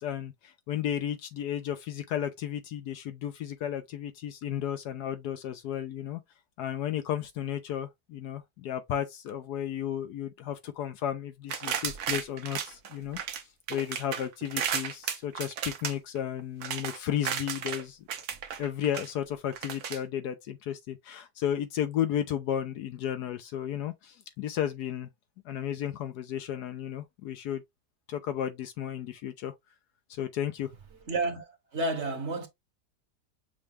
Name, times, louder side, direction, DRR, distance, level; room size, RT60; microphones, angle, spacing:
voice 1, 0.0-6.2 6.6-13.2 13.7-18.0 18.6-25.1 25.5-27.6 28.1-29.5 30.1-30.7, left 10 dB, 75° left, 1.2 m, -33 dB
sound 1, 11.5-13.4 13.7-17.8 18.1-19.1 19.5-20.0, right 8 dB, 70° right, 1.2 m, -34 dB
voice 2, 31.1-32.5, right 2 dB, 50° right, 1.1 m, -31 dB
6.4 x 2.2 x 3.4 m
omnidirectional pair, 1.8 m